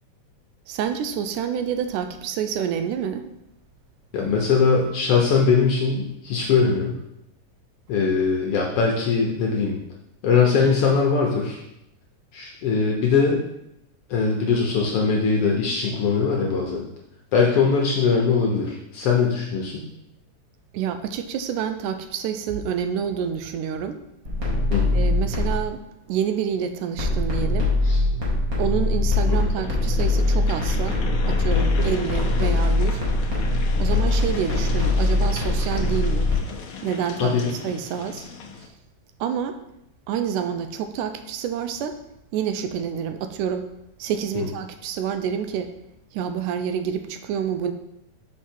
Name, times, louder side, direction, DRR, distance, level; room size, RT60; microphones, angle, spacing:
voice 1, 0.7-3.2 20.7-24.0 24.9-25.8 26.1-27.7 28.6-31.0 31.3-33.0 33.8-36.3 36.8-37.4 37.6-38.3 39.2-39.6 40.1-42.0 42.3-43.7 44.0-45.7 46.1-47.7, right 8 dB, 90° right, 8 dB, 2.2 m, -28 dB
voice 2, 4.1-6.9 7.9-9.8 10.2-11.6 12.3-13.4 14.1-16.8 17.3-19.8 24.7-25.0 27.8-28.0 29.3-29.5 37.2-37.5 44.3-44.5, left 5 dB, 65° left, -1 dB, 1.5 m, -21 dB
sound 1, 24.3-25.7 27.0-36.4, left 2 dB, 30° right, 2.1 m, -22 dB
sound 2, 29.5-38.7, left 5 dB, 90° left, 1.1 m, -35 dB
5.8 x 5.8 x 4.4 m, 0.83 s
omnidirectional pair, 3.5 m